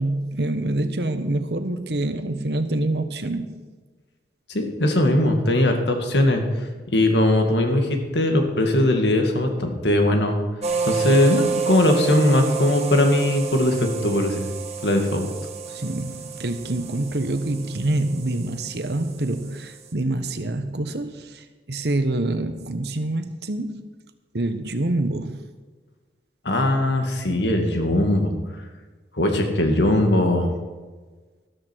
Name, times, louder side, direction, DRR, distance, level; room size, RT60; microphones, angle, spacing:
voice 1, 0.0-3.6 15.7-23.8 24.3-25.4, right 2 dB, 70° right, 9 dB, 1.1 m, -26 dB
voice 2, 4.5-6.4 6.9-10.4 10.8-14.5 14.8-15.3 26.5-28.3 29.2-30.5, left 1 dB, 80° left, 4 dB, 2.0 m, -20 dB
sound 1, 10.6-19.9, right 5 dB, 35° right, 1.5 m, -30 dB
13.0 x 13.0 x 4.6 m, 1.4 s
head